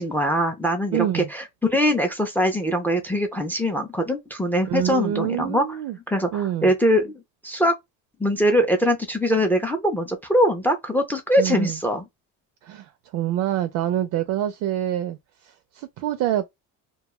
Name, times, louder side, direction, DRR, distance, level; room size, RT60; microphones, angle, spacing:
voice 1, 0.0-5.8 6.1-7.7 8.2-12.0, equal, 5° left, 0.4 m, -22 dB
voice 2, 0.9-1.3 4.7-6.0 6.3-6.7 11.4-11.8 12.6-15.2 15.4-16.5, right 12 dB, 65° right, 0.5 m, -26 dB
2.3 x 2.3 x 2.9 m
cardioid pair, 140°, 37 cm